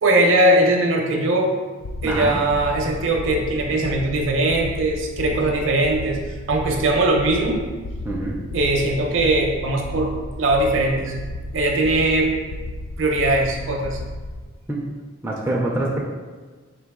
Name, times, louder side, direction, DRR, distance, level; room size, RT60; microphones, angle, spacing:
voice 1, 0.0-1.5 2.0-6.2 6.5-7.6 8.5-11.1 11.5-12.3 13.0-14.0, right 2 dB, 60° right, 1 dB, 0.6 m, -20 dB
sound 1, 1.8-14.5, left 1 dB, 75° left, 0.4 m, -33 dB
voice 2, 2.0-2.4 8.1-8.4 14.7-14.8 15.2-16.0, right 1 dB, 10° right, -4 dB, 0.3 m, -25 dB
3.9 x 2.7 x 3.5 m, 1.4 s
head